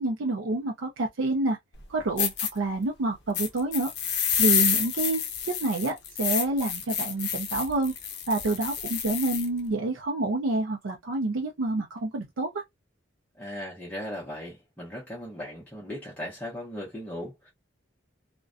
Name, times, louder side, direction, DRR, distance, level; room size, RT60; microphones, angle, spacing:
voice 1, 0.0-1.6 1.9-7.9 8.3-12.6, right 2 dB, 85° right, 0.5 m, -28 dB
sound 1, 1.7-1.8 2.2-2.5 3.3-9.5, left 8 dB, 55° left, 0.6 m, -28 dB
voice 2, 13.4-17.5, left 1 dB, 10° left, 0.7 m, -38 dB
2.4 x 2.2 x 2.4 m
head